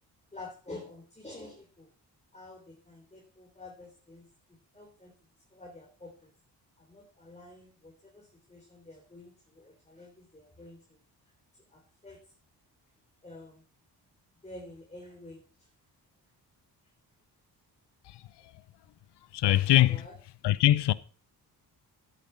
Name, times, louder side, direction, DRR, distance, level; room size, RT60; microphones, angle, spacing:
voice 1, 0.3-1.9 2.3-4.3 4.7-5.1 5.5-6.3 6.8-11.0 11.7-12.3 13.2-13.6 14.4-15.7 19.9-20.1, left 2 dB, 15° left, 3.8 m, -49 dB
voice 2, 19.3-20.1 20.4-20.9, left 14 dB, 75° left, 0.8 m, -23 dB
11.0 x 8.5 x 5.6 m
cardioid pair, 80°, 41 cm